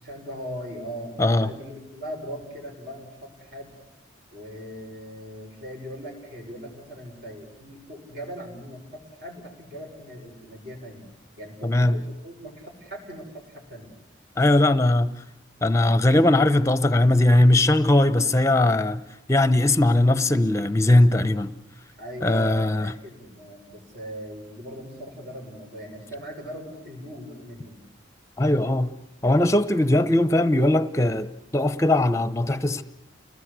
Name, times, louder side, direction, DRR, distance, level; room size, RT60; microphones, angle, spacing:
voice 1, 0.0-3.7 4.3-11.1 11.4-13.9 21.9-27.9, equal, 55° right, 6.4 m, -39 dB
voice 2, 1.2-1.5 11.6-11.9 14.4-15.1 15.6-19.0 19.3-21.5 22.2-22.9 28.4-28.9 29.2-31.3 31.5-32.8, left 1 dB, 15° left, 0.8 m, -19 dB
29.5 x 19.5 x 8.2 m
head